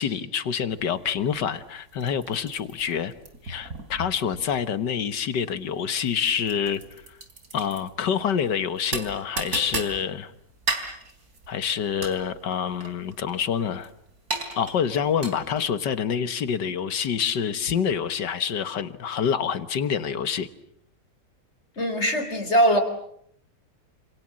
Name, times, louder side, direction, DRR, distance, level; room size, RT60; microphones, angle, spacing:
voice 1, 0.0-3.1 3.4-6.8 7.5-10.3 11.5-13.9 14.6-20.5, left 7 dB, 80° left, 13 dB, 2.0 m, -27 dB
sound 1, 0.7-15.8, right 3 dB, 60° right, 4.2 m, -36 dB
voice 2, 21.8-22.8, right 1 dB, 40° left, 7 dB, 4.2 m, -21 dB
28.5 x 27.5 x 7.6 m, 0.70 s
omnidirectional pair, 1.8 m